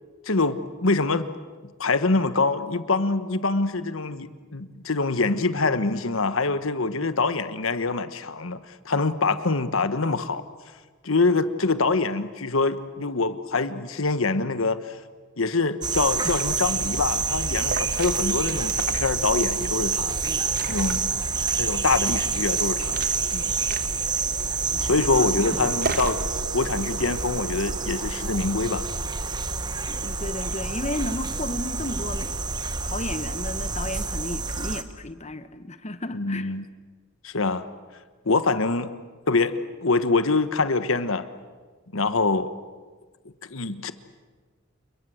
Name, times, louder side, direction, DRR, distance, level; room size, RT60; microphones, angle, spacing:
voice 1, 0.2-1.3 1.8-10.4 11.0-15.0 15.4-20.2 20.7-21.2 21.6-23.0 23.3-23.5 24.8-26.2 26.5-28.9 36.1-36.7 37.2-37.6 38.2-38.9 39.3-41.3 41.9-42.5 43.5-43.9, left 3 dB, 80° left, 12 dB, 1.3 m, -25 dB
sound 1, 15.8-34.8, right 4 dB, 20° right, 1.2 m, -28 dB
Liquid, 16.0-26.3, right 4 dB, 45° right, 1.5 m, -38 dB
sound 2, 24.6-32.6, right 3 dB, 70° right, 1.3 m, -44 dB
voice 2, 25.1-25.7 29.9-32.4 32.8-36.5, left 1 dB, 35° left, 11 dB, 1.2 m, -33 dB
28.5 x 22.0 x 7.9 m, 1.4 s
head